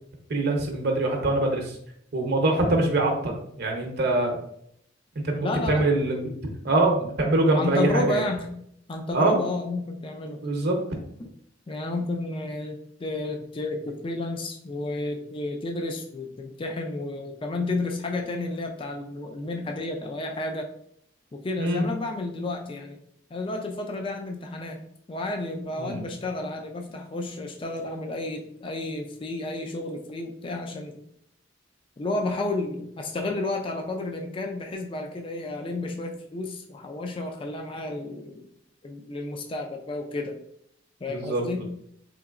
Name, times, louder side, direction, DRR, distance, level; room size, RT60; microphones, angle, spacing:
voice 1, 0.3-1.7 2.1-4.4 5.2-6.3 6.6-8.2 9.1-9.4 10.4-10.8 21.6-21.9 25.8-26.0 41.1-41.6, right 2 dB, 55° right, 2 dB, 0.7 m, -24 dB
voice 2, 5.4-5.9 7.5-8.5 8.9-10.4 11.2-11.3 11.7-20.7 21.3-23.0 23.3-31.0 32.0-38.4 38.8-40.3 41.0-41.6, left 2 dB, 25° left, 3 dB, 0.3 m, -31 dB
3.7 x 2.9 x 2.4 m, 0.70 s
head